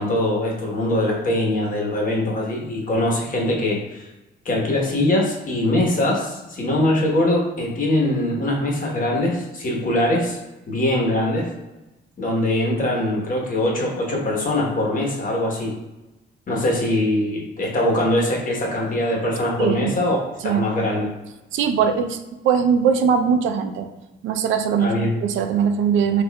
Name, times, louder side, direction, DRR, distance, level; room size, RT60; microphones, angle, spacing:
voice 1, 0.0-4.1 4.4-10.4 10.7-11.5 12.2-15.7 16.5-20.2 20.4-21.1 24.8-25.1, left 1 dB, 45° left, -2 dB, 1.1 m, -22 dB
voice 2, 19.6-19.9 20.4-20.7 21.5-22.2 22.4-23.9 24.2-26.2, right 7 dB, 80° right, 7 dB, 0.4 m, -20 dB
4.3 x 2.4 x 2.2 m, 1.0 s
cardioid pair, 90°, 20 cm